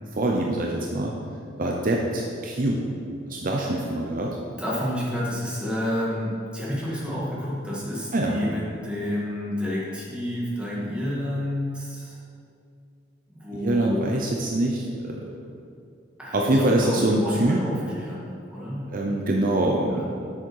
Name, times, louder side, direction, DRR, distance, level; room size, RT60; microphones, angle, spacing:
voice 1, 0.1-1.1 1.6-2.9 3.3-4.4 8.1-8.4 13.5-15.3 16.3-17.6 18.9-20.1, right 1 dB, 45° right, 0 dB, 0.7 m, -24 dB
voice 2, 4.6-12.2 13.3-14.1 16.2-18.9 19.9-20.1, left 1 dB, 5° right, -7 dB, 2.0 m, -30 dB
8.4 x 6.5 x 4.7 m, 2.4 s
head